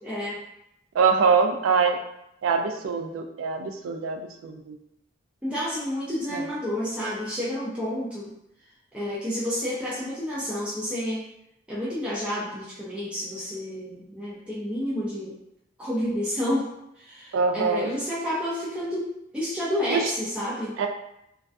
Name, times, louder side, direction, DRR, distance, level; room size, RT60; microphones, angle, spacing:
voice 1, 0.0-0.4 5.4-8.3 8.9-11.2 11.7-15.3 15.8-16.6 17.0-19.1 19.3-20.7, left 1 dB, 5° right, -9 dB, 0.4 m, -30 dB
voice 2, 0.9-2.0 2.4-4.8 6.3-6.4 17.3-18.0 19.9-20.0 20.8-20.9, right 5 dB, 90° right, 5 dB, 0.3 m, -24 dB
2.3 x 2.2 x 2.5 m, 0.80 s
head